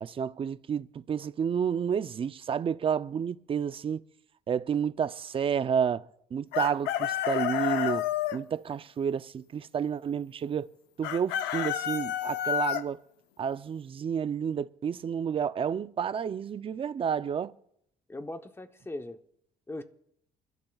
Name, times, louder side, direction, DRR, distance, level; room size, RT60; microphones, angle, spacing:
voice 1, 0.0-4.0 4.5-6.1 6.3-10.7 11.0-13.0 13.4-17.5, right 7 dB, 30° right, 0.5 m, -30 dB
Chicken rooster, 6.5-8.4 11.0-12.8, left 11 dB, 90° left, 0.7 m, -29 dB
voice 2, 18.1-19.2 19.7-19.8, left 1 dB, 15° left, 0.9 m, -39 dB
27.5 x 12.0 x 2.4 m
cardioid pair, 110°, 17 cm